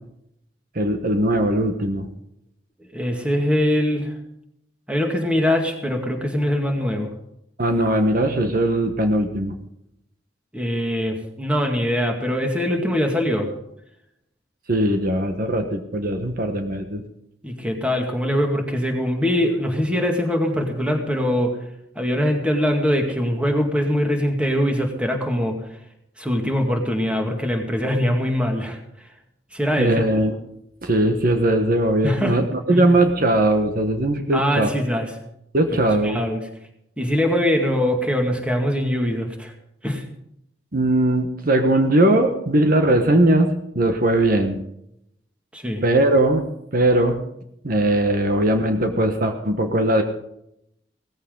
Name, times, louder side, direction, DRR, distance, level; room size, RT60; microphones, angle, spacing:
voice 1, 0.7-2.1 7.6-9.5 14.7-17.0 29.8-30.4 30.8-34.7 35.5-36.2 40.7-44.6 45.8-46.5 46.7-47.2 47.6-50.0, right 1 dB, 55° right, 6 dB, 1.3 m, -19 dB
voice 2, 2.9-4.1 4.9-7.1 10.5-13.5 17.4-21.6 22.0-25.6 26.2-28.8 29.5-30.0 32.0-32.4 32.7-32.9 34.3-35.1 36.0-36.4 37.0-39.5 39.8-40.1 45.5-45.8, equal, 5° right, 2 dB, 2.2 m, -22 dB
17.5 x 14.5 x 3.9 m, 0.77 s
head